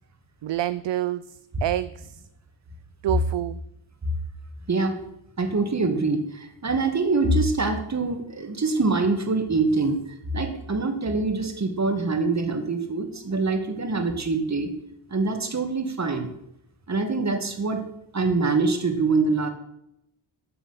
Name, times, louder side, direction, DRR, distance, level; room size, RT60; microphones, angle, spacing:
voice 1, 0.4-2.2 3.0-3.6, right 13 dB, 65° right, 15 dB, 0.6 m, -28 dB
voice 2, 5.4-10.0 10.3-14.7 15.1-16.3 16.9-17.9 18.1-19.5, right 3 dB, 35° right, 6 dB, 2.3 m, -24 dB
14.0 x 8.0 x 6.0 m, 0.79 s
cardioid pair, 80°, 48 cm